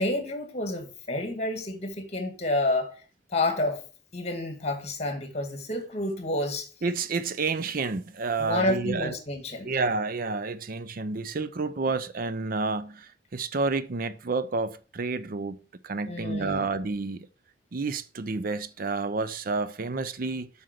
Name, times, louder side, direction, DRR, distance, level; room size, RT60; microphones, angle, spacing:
voice 1, 0.0-2.9 3.3-3.8 4.1-6.7 8.4-9.7 16.1-16.7, left 2 dB, 40° left, 2.1 m, -29 dB
voice 2, 6.8-9.1 9.6-15.6 15.8-17.3 17.7-20.5, right 3 dB, 55° right, 0.6 m, -30 dB
7.7 x 5.5 x 6.5 m
head